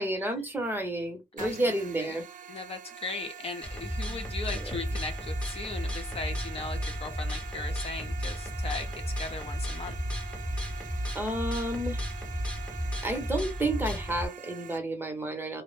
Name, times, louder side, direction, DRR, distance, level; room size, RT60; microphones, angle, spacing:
voice 1, 0.0-2.3 4.5-4.6 11.1-12.0 13.0-15.6, right 1 dB, 15° right, 0.8 m, -31 dB
voice 2, 1.4-2.2 2.5-9.9, left 3 dB, 45° left, 0.8 m, -38 dB
sound 1, 1.4-14.8, right 8 dB, 65° right, 0.6 m, -45 dB
sound 2, 3.6-14.3, equal, 10° left, 0.8 m, -34 dB
2.1 x 2.0 x 3.1 m
cardioid pair, 105°, 14 cm